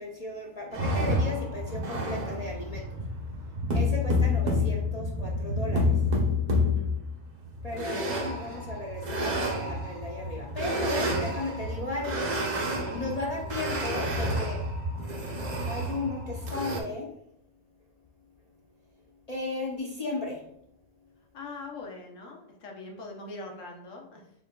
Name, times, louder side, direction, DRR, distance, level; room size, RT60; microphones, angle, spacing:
voice 1, 0.0-3.0 3.7-6.0 7.6-12.3 12.9-14.6 15.6-17.1 19.3-20.4, left 2 dB, 40° left, -2 dB, 0.6 m, -35 dB
sound 1, 0.7-16.8, left 1 dB, 45° right, 0.7 m, -29 dB
voice 2, 6.5-7.0 7.7-8.1 8.5-8.8 12.8-13.0 21.3-24.2, left 2 dB, 85° left, 1 dB, 1.3 m, -43 dB
5.2 x 3.8 x 2.2 m, 0.74 s
omnidirectional pair, 1.3 m